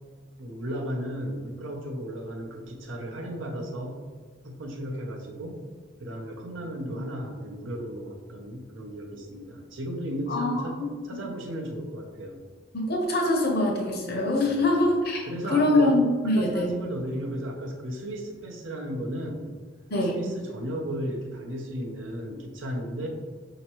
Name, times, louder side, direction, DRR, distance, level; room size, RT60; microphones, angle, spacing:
voice 1, 0.4-4.0 4.4-5.6 6.0-12.4 14.5-14.7 15.2-16.0 16.2-19.4 20.0-23.1, equal, 75° right, 1 dB, 0.7 m, -35 dB
voice 2, 10.3-10.9 12.7-15.2 15.5-16.7 19.9-20.2, left 1 dB, 50° left, 0 dB, 0.9 m, -24 dB
5.4 x 2.9 x 2.9 m, 1.5 s
head